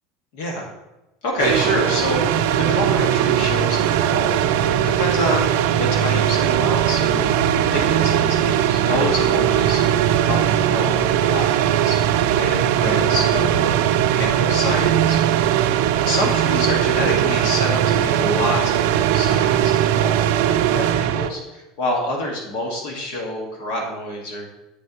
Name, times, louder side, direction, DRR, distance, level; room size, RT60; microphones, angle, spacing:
voice 1, 0.3-0.7 1.2-4.4 4.8-7.3 7.7-9.8 10.2-12.0 12.3-13.8 14.1-15.2 16.1-24.5, left 1 dB, 60° left, 0 dB, 1.7 m, -27 dB
sound 1, 1.4-21.3, right 10 dB, 65° right, 0.4 m, -19 dB
sound 2, 1.5-5.1 6.0-6.1 7.2-11.1 12.1-12.2 12.8-15.5 15.9-16.0, left 1 dB, 20° left, 1.5 m, -37 dB
7.9 x 6.4 x 3.0 m, 0.96 s
cardioid pair, 170°, 0 cm